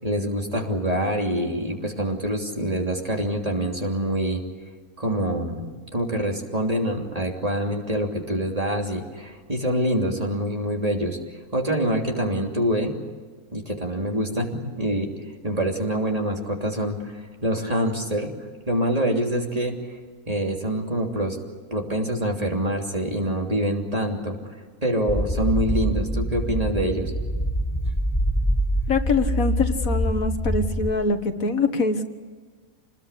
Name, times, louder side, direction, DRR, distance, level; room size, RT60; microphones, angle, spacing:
voice 1, 0.0-4.4 5.0-11.2 11.5-12.9 13.5-15.1 15.4-18.3 18.7-20.0 20.3-21.4 21.7-24.4 24.8-27.1, equal, 25° right, 1 dB, 3.2 m, -25 dB
sound 1, 25.1-30.9, equal, 20° left, 4.0 m, -25 dB
voice 2, 28.9-32.0, left 3 dB, 80° left, 7 dB, 2.1 m, -24 dB
27.5 x 20.5 x 8.4 m, 1.5 s
omnidirectional pair, 1.4 m